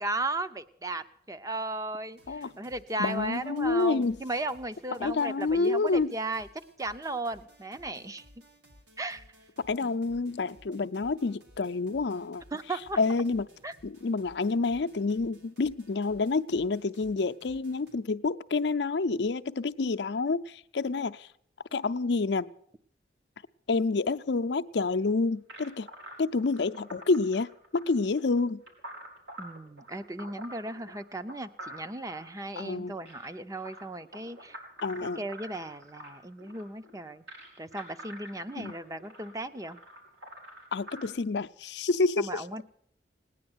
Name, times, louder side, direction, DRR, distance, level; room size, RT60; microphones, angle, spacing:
voice 1, 0.0-6.5 6.8-8.2 9.0-9.2 12.5-13.0 13.6-13.7 29.4-34.6 35.2-37.2 37.6-39.8 42.2-42.6, right 2 dB, 20° right, 0.6 m, -36 dB
sound 1, 2.1-18.0, equal, 75° right, 2.3 m, -58 dB
voice 2, 3.0-4.2 5.0-6.2 9.7-12.4 13.0-13.5 13.8-21.3 21.7-22.5 23.7-25.9 26.2-28.6 32.6-33.0 34.8-35.2 38.6-38.7 40.7-42.6, left 3 dB, 70° left, 0.6 m, -28 dB
sound 2, 25.5-41.1, right 1 dB, 90° right, 4.1 m, -47 dB
18.0 x 10.0 x 7.9 m
head